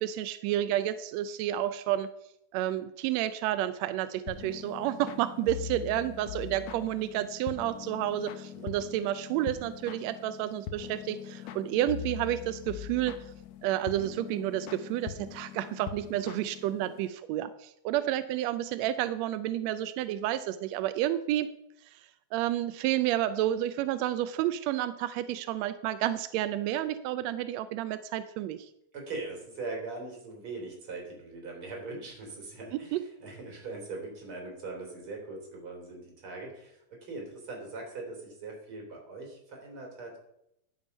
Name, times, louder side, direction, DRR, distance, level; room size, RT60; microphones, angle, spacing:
voice 1, 0.0-2.1 2.5-13.1 13.6-21.5 22.3-28.7 32.9-33.0, right 12 dB, 85° right, 12 dB, 1.5 m, -30 dB
sound 1, 4.3-17.1, left 9 dB, 70° left, 1.8 m, -42 dB
voice 2, 28.9-40.2, right 3 dB, 45° right, 0 dB, 4.1 m, -41 dB
11.0 x 7.1 x 5.4 m, 0.78 s
omnidirectional pair, 3.5 m